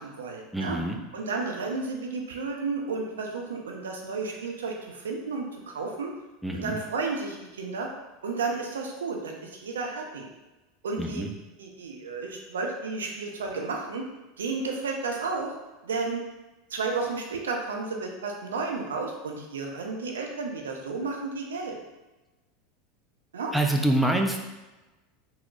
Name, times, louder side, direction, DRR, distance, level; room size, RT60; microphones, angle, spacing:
voice 1, 0.0-0.8 1.1-6.1 6.5-7.9 8.2-10.3 10.8-11.2 11.6-14.0 14.4-15.5 15.8-16.2 16.7-21.8 23.3-23.5, right 4 dB, 75° right, 1 dB, 0.5 m, -32 dB
voice 2, 0.5-1.0 6.4-6.8 11.0-11.3 23.5-24.4, right 1 dB, 5° right, 1 dB, 0.4 m, -26 dB
3.9 x 2.9 x 2.3 m, 1.1 s
figure-of-eight pair, 80°, 0 cm